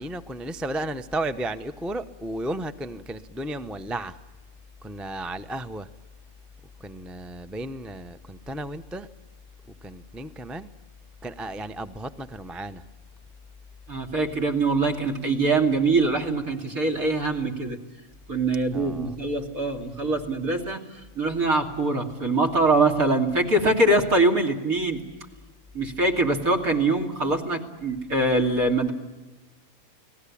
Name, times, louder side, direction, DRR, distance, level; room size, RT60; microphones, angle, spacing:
voice 1, 0.0-4.2 4.8-5.9 6.8-9.1 9.8-10.7 11.2-12.8 18.7-19.1, right 1 dB, ahead, 0.6 m, -34 dB
voice 2, 13.9-17.8 18.3-20.8 21.1-25.0 25.7-28.9, right 2 dB, 70° right, 3.2 m, -23 dB
30.0 x 19.0 x 8.6 m
omnidirectional pair, 1.5 m